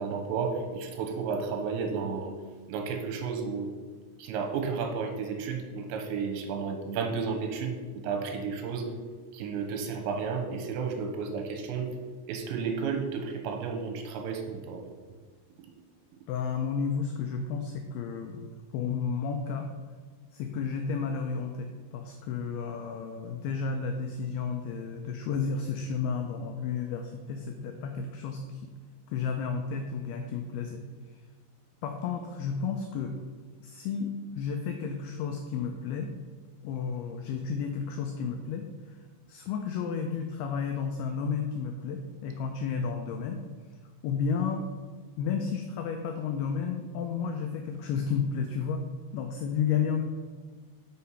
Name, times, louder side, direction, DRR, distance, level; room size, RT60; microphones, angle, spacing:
voice 1, 0.0-2.3 2.7-3.7 4.2-8.9 9.3-11.9 12.3-14.9, right 5 dB, 85° right, 3 dB, 3.2 m, -32 dB
voice 2, 16.3-19.7 20.3-28.7 29.1-30.8 31.8-33.2 33.6-36.1 36.6-39.0 39.3-43.4 44.0-44.6 45.2-48.8 49.1-50.0, left 6 dB, 90° left, 5 dB, 2.2 m, -32 dB
6.3 x 5.7 x 5.6 m, 1.5 s
omnidirectional pair, 5.1 m